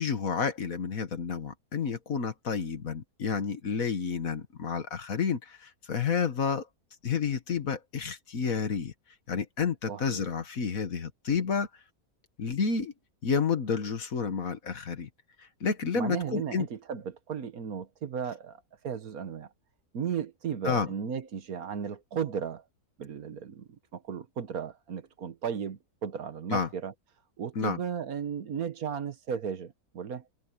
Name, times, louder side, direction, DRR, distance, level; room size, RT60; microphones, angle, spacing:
voice 1, 0.0-6.7 7.0-8.9 9.3-11.7 12.4-12.9 13.2-15.1 15.6-16.7 20.6-20.9 26.5-26.7 27.6-27.8, left 6 dB, 60° left, 1.9 m, -30 dB
voice 2, 9.9-10.2 15.9-19.5 19.9-22.6 23.0-26.9 27.4-30.3, right 7 dB, 65° right, 1.6 m, -35 dB
omnidirectional pair, 1.7 m